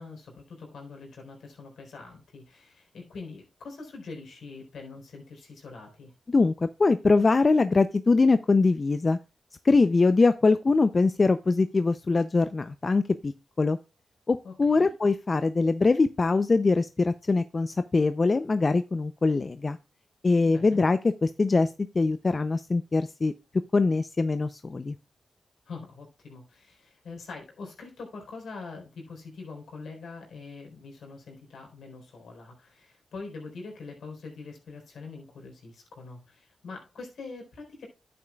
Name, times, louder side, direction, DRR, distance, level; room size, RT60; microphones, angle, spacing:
voice 1, 0.0-6.1 14.4-14.9 20.4-20.8 25.7-37.9, left 4 dB, 80° left, 2 dB, 4.0 m, -43 dB
voice 2, 6.3-9.2 9.6-13.3 13.6-13.8 14.3-19.8 20.2-21.7 21.9-23.3 23.7-24.9, left 3 dB, 45° left, 11 dB, 0.5 m, -23 dB
10.5 x 8.7 x 2.3 m, 0.28 s
cardioid pair, 50°, 0 cm